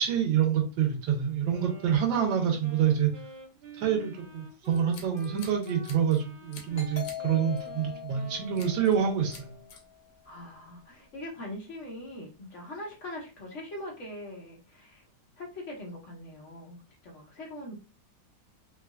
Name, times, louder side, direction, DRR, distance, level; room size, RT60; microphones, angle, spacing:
voice 1, 0.0-3.1 3.8-9.5, right 8 dB, 85° right, 3 dB, 1.5 m, -27 dB
Wind instrument woodwind instrument, 1.5-9.7, right 3 dB, 60° right, 0.6 m, -48 dB
Scissors, 4.7-6.2 6.5-7.2 7.6-7.8 8.6-9.0 9.3-9.8, left 5 dB, 85° left, 1.5 m, -49 dB
Doorbell, 6.7-10.1, left 10 dB, 25° left, 1.2 m, -42 dB
voice 2, 10.2-15.0 15.4-17.7, left 1 dB, 50° left, -1 dB, 1.1 m, -42 dB
4.0 x 2.2 x 2.3 m, 0.33 s
omnidirectional pair, 2.0 m